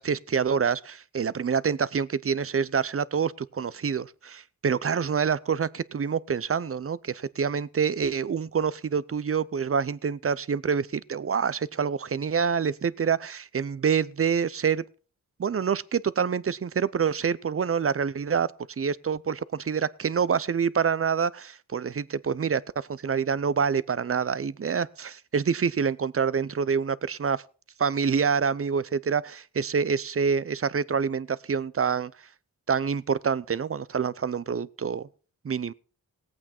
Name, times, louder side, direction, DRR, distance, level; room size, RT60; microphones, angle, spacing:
voice 1, 0.0-14.8 15.4-18.5 18.8-27.4 27.8-32.1 32.7-35.1 35.4-35.7, right 6 dB, 40° right, 0.6 m, -27 dB
17.5 x 8.6 x 4.3 m
wide cardioid pair, 85°, 34 cm